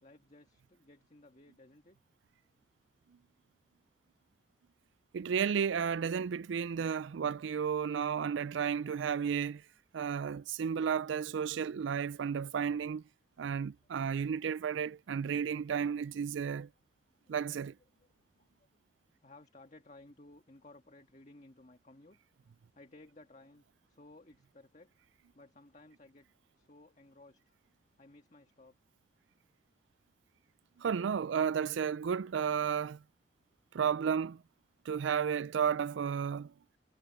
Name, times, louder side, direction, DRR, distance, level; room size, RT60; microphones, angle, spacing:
voice 1, 0.0-2.0 14.0-14.4 17.2-17.3 17.9-18.1 18.3-18.7 19.2-22.2 22.7-24.9 25.3-26.3 26.6-27.5 28.0-28.7, left 2 dB, 40° left, 1.7 m, -58 dB
voice 2, 5.1-9.6 9.9-13.0 13.4-16.7 17.3-17.8 30.8-33.0 33.7-34.4 34.9-36.5, right 7 dB, 85° right, 0.4 m, -33 dB
head